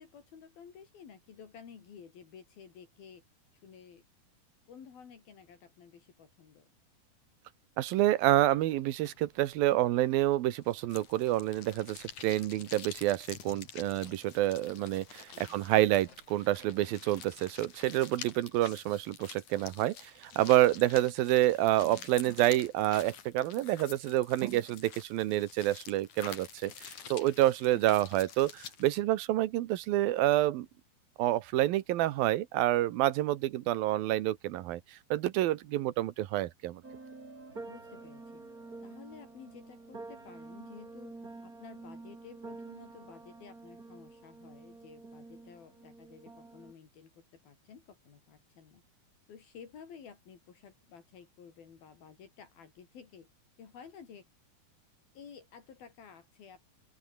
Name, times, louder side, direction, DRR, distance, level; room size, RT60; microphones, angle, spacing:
voice 1, 0.0-3.2 3.6-4.0 4.7-6.7 15.3-16.0 27.7-28.2 35.7-35.9 37.7-38.4 38.8-41.2 41.4-48.8 49.3-53.3 53.6-54.3 55.1-56.6, left 7 dB, 75° left, 5.2 m, -53 dB
voice 2, 7.8-30.7 31.2-34.8 35.1-36.8, right 14 dB, 75° right, 2.8 m, -28 dB
sound 1, 8.1-18.4, left 3 dB, 40° left, 8.0 m, -62 dB
sound 2, 10.9-28.9, left 8 dB, 55° left, 4.0 m, -49 dB
sound 3, 36.8-46.7, right 3 dB, 25° right, 4.6 m, -48 dB
open air
omnidirectional pair, 4.3 m